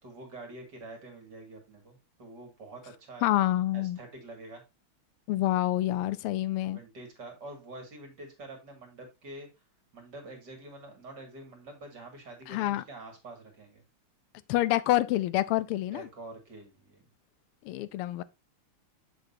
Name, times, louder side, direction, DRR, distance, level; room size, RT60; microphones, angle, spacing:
voice 1, 0.0-3.3 3.7-4.6 6.6-9.5 9.9-13.8 15.9-17.1, right 2 dB, 50° right, 2.9 m, -46 dB
voice 2, 3.2-4.0 5.3-6.8 12.5-12.8 14.5-16.1 17.6-18.2, left 15 dB, 90° left, 1.6 m, -27 dB
8.1 x 6.5 x 2.7 m
omnidirectional pair, 2.4 m